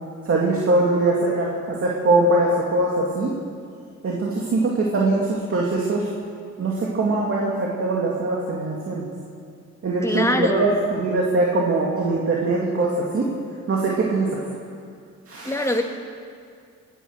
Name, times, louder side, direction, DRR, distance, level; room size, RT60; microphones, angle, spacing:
voice 1, 0.2-3.3 4.0-6.1 6.6-9.1 9.8-13.3 13.7-14.4 15.3-15.8, right 2 dB, 45° right, -3 dB, 2.4 m, -22 dB
voice 2, 10.0-10.7 15.5-15.8, left 1 dB, 10° left, 3 dB, 1.7 m, -23 dB
21.0 x 10.0 x 6.4 m, 2.3 s
cardioid pair, 90°, 30 cm